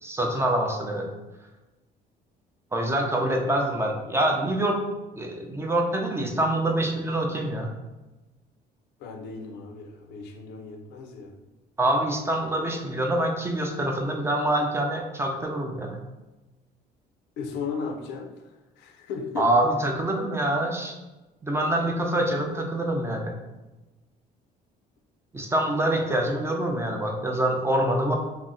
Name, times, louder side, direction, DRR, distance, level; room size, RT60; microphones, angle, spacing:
voice 1, 0.0-1.1 2.7-4.8 5.2-7.7 11.8-16.0 19.4-20.9 21.4-23.3 25.3-28.2, right 1 dB, 15° right, 1 dB, 0.5 m, -25 dB
voice 2, 9.0-11.4 17.4-18.4 18.8-19.5, left 5 dB, 80° left, 5 dB, 0.5 m, -35 dB
2.6 x 2.1 x 3.7 m, 1.1 s
cardioid pair, 110°, 17 cm